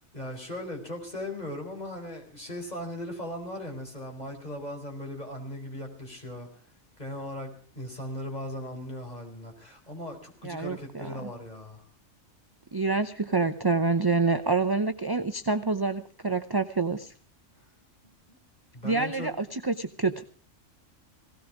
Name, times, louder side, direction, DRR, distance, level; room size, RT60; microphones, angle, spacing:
voice 1, 0.1-6.5 7.0-11.8 18.0-18.4 18.7-19.3, left 1 dB, 30° left, 2 dB, 4.5 m, -38 dB
voice 2, 10.4-11.3 12.7-17.1 18.8-20.2, right 3 dB, 25° right, 9 dB, 0.6 m, -27 dB
18.0 x 16.5 x 4.9 m, 0.42 s
omnidirectional pair, 1.4 m